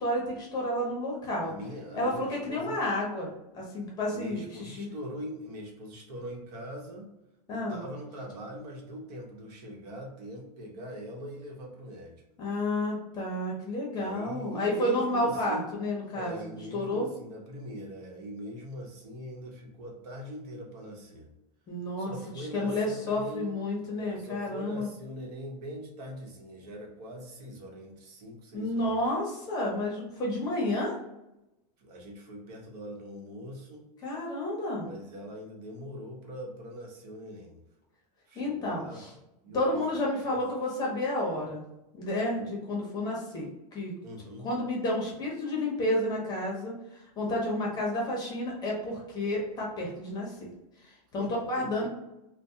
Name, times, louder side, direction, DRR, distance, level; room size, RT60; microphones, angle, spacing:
voice 1, 0.0-1.5 1.9-3.3 3.5-4.9 7.5-7.8 12.4-17.1 21.7-24.9 28.5-31.0 34.0-34.9 38.3-39.1 39.5-41.6 41.9-43.9 44.4-50.5 50.8-51.9, left 1 dB, 20° left, -2 dB, 0.7 m, -31 dB
voice 2, 1.4-2.8 4.1-7.1 7.5-12.2 14.0-15.7 16.1-21.3 22.0-23.5 24.0-29.0 31.8-33.9 34.8-37.6 38.3-39.0 39.4-40.4 44.0-44.5 51.2-51.9, equal, 65° right, 0 dB, 1.0 m, -42 dB
3.3 x 2.1 x 2.7 m, 0.92 s
supercardioid pair, 165°, 21 cm